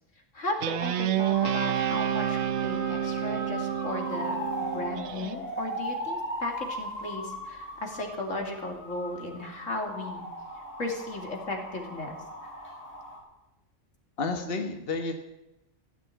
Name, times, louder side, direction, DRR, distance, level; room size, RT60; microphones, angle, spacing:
voice 1, 0.3-10.2 10.8-12.2, left 2 dB, 80° left, 2 dB, 3.0 m, -36 dB
Guitar, 0.6-5.4, right 10 dB, 65° right, 1.0 m, -29 dB
sound 1, 1.3-13.2, equal, 10° left, 5.8 m, -38 dB
voice 2, 14.2-15.1, left 3 dB, 50° left, 4 dB, 1.5 m, -30 dB
16.0 x 8.3 x 9.2 m, 0.97 s
omnidirectional pair, 1.3 m